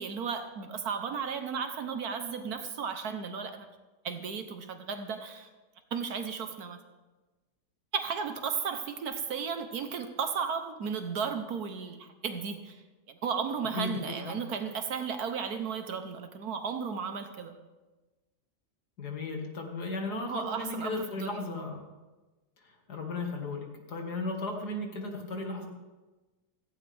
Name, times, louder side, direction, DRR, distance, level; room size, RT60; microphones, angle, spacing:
voice 1, 0.0-3.7 4.0-5.5 5.9-6.8 7.9-12.8 13.1-17.6 20.3-21.4, right 6 dB, 60° right, 8 dB, 1.4 m, -34 dB
voice 2, 13.8-14.4 19.0-21.9 22.6-25.7, left 2 dB, 65° left, 2 dB, 2.5 m, -35 dB
16.5 x 15.0 x 3.5 m, 1.2 s
omnidirectional pair, 1.9 m